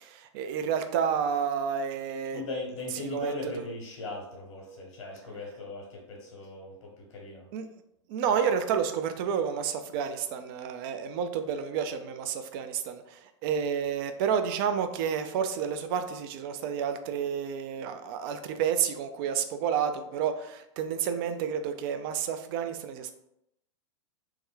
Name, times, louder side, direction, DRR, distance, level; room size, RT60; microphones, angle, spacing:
voice 1, 0.0-2.4 3.0-3.3 7.5-7.6 8.1-23.1, right 7 dB, 50° right, 8 dB, 0.4 m, -30 dB
voice 2, 2.3-7.5, left 3 dB, 70° left, -2 dB, 1.0 m, -39 dB
3.0 x 2.1 x 3.7 m, 0.80 s
hypercardioid pair, 110°, 16 cm